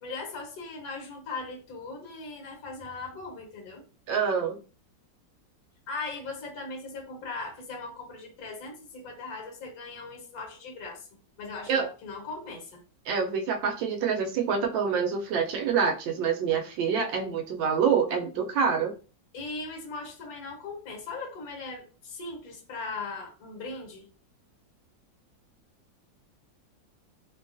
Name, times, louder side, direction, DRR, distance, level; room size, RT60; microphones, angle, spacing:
voice 1, 0.0-3.8 5.9-11.1 11.4-12.8 19.3-24.1, left 3 dB, 55° left, 1.3 m, -39 dB
voice 2, 4.1-4.6 11.7-11.9 13.1-18.9, right 6 dB, 85° right, 1.4 m, -26 dB
3.2 x 2.3 x 2.5 m
omnidirectional pair, 2.0 m